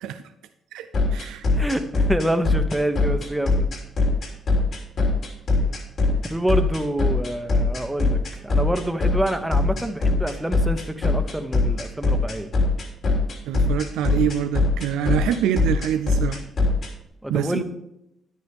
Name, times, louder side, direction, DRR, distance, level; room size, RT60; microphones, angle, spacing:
voice 1, 0.7-1.5 13.5-16.4 17.3-17.6, right 9 dB, 90° right, 9 dB, 0.5 m, -25 dB
sound 1, 0.9-16.9, left 2 dB, 55° left, 3.2 m, -21 dB
voice 2, 1.5-3.7 6.3-12.5 17.2-17.6, right 1 dB, 5° right, 8 dB, 1.0 m, -26 dB
10.5 x 9.6 x 3.6 m, 0.83 s
cardioid pair, 90°, 0 cm